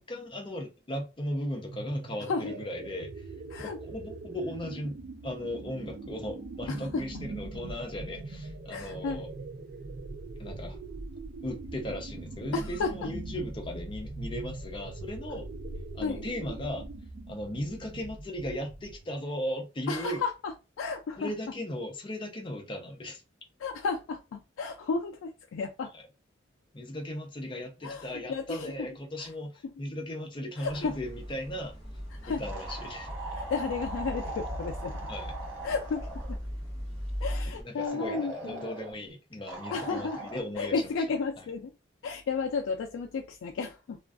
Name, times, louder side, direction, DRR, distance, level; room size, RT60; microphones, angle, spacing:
voice 1, 0.0-3.2 3.6-5.0 5.2-9.3 10.4-10.8 11.4-15.5 15.9-16.9 17.3-20.2 21.2-23.2 25.9-26.0 26.7-31.8 32.4-33.1 35.1-35.3 37.5-40.9 41.4-41.5, left 1 dB, 25° left, 0.5 m, -37 dB
sound 1, 1.6-19.2, right 2 dB, 55° right, 0.4 m, -41 dB
voice 2, 6.7-7.0 8.7-9.2 12.5-12.9 16.0-16.2 19.9-21.3 23.6-25.9 27.8-28.7 29.2-29.3 30.6-31.0 32.2-32.4 33.3-35.0 35.6-36.4 37.2-38.7 39.7-40.3 40.6-41.7 42.0-44.0, left 4 dB, 85° left, 0.3 m, -33 dB
sound 2, 30.6-37.6, equal, 35° right, 0.8 m, -38 dB
sound 3, 32.4-36.4 37.8-38.9 39.5-40.4, right 2 dB, 80° right, 0.9 m, -40 dB
2.4 x 2.2 x 2.3 m
head